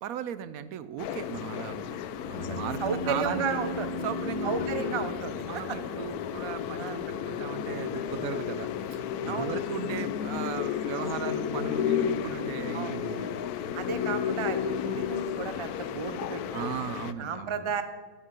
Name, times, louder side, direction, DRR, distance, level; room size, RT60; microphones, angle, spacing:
voice 1, 0.0-3.6 4.0-4.5 4.8-4.9 5.5-13.3 16.5-17.7, right 9 dB, 70° right, 14 dB, 1.0 m, -37 dB
sound 1, 1.0-17.1, left 9 dB, 80° left, 1.1 m, -33 dB
horn mild, 2.2-5.9, left 1 dB, 10° left, 2.3 m, -37 dB
voice 2, 2.4-3.9 4.4-5.8 6.8-7.0 9.3-9.5 12.7-12.9 13.7-16.7 17.2-17.8, right 6 dB, 50° right, 10 dB, 0.3 m, -33 dB
sound 2, 4.7-14.8, left 1 dB, 30° right, 2.4 m, -47 dB
11.0 x 8.2 x 5.3 m, 1.4 s
omnidirectional pair, 1.6 m